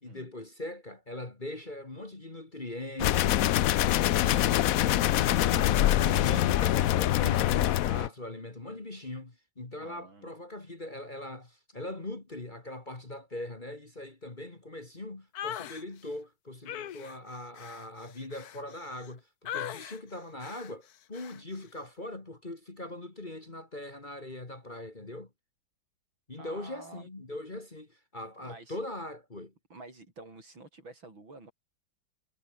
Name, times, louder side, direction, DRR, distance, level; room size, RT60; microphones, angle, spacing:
voice 1, 0.0-25.3 26.3-29.5, left 1 dB, 25° left, 2.3 m, -41 dB
sound 1, 3.0-8.1, left 13 dB, 85° left, 0.7 m, -24 dB
voice 2, 9.8-10.3 26.4-27.1 28.4-28.8 29.7-31.5, right 2 dB, 75° right, 7.7 m, -49 dB
sound 2, 15.3-15.8 16.7-19.1 19.5-20.0 20.4-20.7 21.1-21.4, left 10 dB, 60° left, 1.3 m, -40 dB
omnidirectional pair, 2.2 m